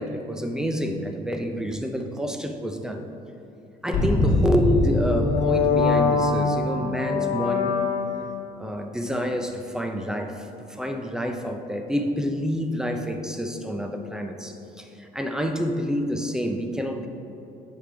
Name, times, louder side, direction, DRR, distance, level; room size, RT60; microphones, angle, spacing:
voice 1, 0.0-3.1 3.8-7.8 8.6-17.1, equal, 5° right, 4 dB, 0.5 m, -28 dB
sound 1, 3.9-8.4, left 3 dB, 75° left, 1.1 m, -23 dB
6.6 x 5.0 x 3.4 m, 2.9 s
cardioid pair, 110°, 17 cm